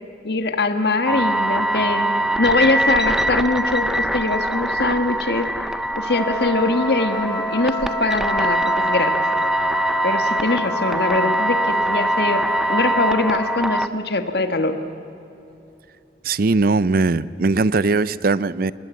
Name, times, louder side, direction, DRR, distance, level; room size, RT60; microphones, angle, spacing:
voice 1, 0.2-5.5 6.0-9.2 10.0-14.7, left 2 dB, 65° left, 7 dB, 1.6 m, -22 dB
sound 1, 1.1-13.9, right 1 dB, 5° right, 0.6 m, -23 dB
Wind instrument woodwind instrument, 6.1-13.8, left 2 dB, 25° left, 1.5 m, -31 dB
voice 2, 16.2-18.7, right 3 dB, 55° right, 18 dB, 0.6 m, -19 dB
28.0 x 21.0 x 8.3 m, 2.8 s
head